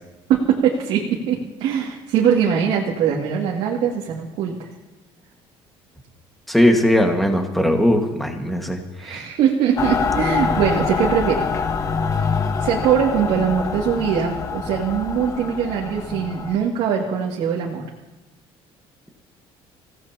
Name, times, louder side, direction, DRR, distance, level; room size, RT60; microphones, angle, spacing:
voice 1, 0.3-4.7 9.0-11.5 12.6-17.8, right 8 dB, 70° right, -2 dB, 2.3 m, -21 dB
voice 2, 6.5-9.3, left 1 dB, ahead, 2 dB, 1.7 m, -19 dB
Mechanical fan, 9.8-16.6, left 5 dB, 30° left, 0.9 m, -25 dB
27.5 x 17.0 x 2.9 m, 1.0 s
cardioid pair, 165°, 11 cm